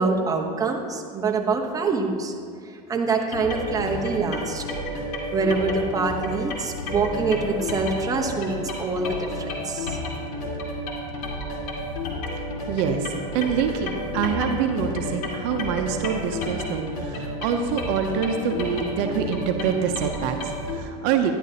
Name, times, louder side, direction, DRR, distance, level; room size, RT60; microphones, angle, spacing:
voice 1, 0.0-2.3 2.6-4.7 5.3-10.0, right 4 dB, 20° right, 1 dB, 1.0 m, -25 dB
sound 1, 3.3-20.8, left 1 dB, 70° left, 2.4 m, -31 dB
voice 2, 12.3-21.3, right 7 dB, 60° right, 5 dB, 0.7 m, -26 dB
11.0 x 11.0 x 2.9 m, 2.3 s
supercardioid pair, 120°, 19 cm